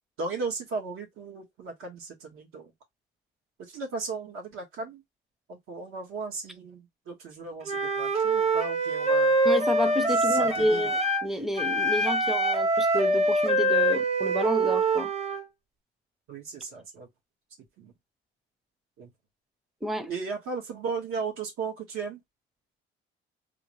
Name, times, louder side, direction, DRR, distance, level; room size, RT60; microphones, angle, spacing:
voice 1, 0.2-2.7 3.6-5.0 5.5-9.3 10.3-11.0 16.3-17.1 17.8-17.9 19.0-19.1 20.1-22.2, right 4 dB, 80° right, 1.8 m, -36 dB
Wind instrument woodwind instrument, 7.6-11.3 11.5-15.4, right 1 dB, 30° right, 0.8 m, -24 dB
voice 2, 9.4-15.1 19.8-20.1, left 1 dB, ahead, 0.5 m, -30 dB
3.7 x 2.5 x 3.1 m
cardioid pair, 140°, 21 cm